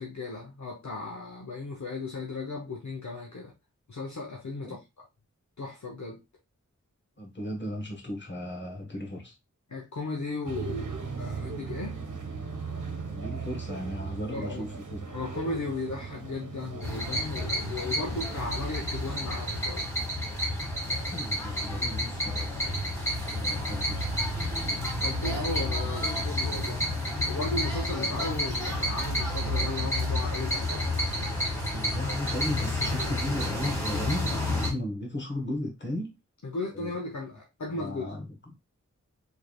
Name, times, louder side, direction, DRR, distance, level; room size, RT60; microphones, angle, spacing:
voice 1, 0.0-3.5 3.9-5.0 5.6-6.2 9.7-12.0 14.3-14.6 15.1-19.9 24.8-26.9 27.3-31.0 36.4-38.1, left 3 dB, 65° left, 1.0 m, -36 dB
voice 2, 7.2-9.3 13.1-15.2 21.0-22.8 23.3-24.2 31.6-36.2 36.7-37.0 37.7-38.6, left 1 dB, 35° left, 1.4 m, -36 dB
sound 1, 10.5-18.5, right 4 dB, 70° right, 1.0 m, -38 dB
sound 2, 16.8-34.7, left 1 dB, 10° left, 1.9 m, -30 dB
4.6 x 3.4 x 2.3 m
wide cardioid pair, 70°, 31 cm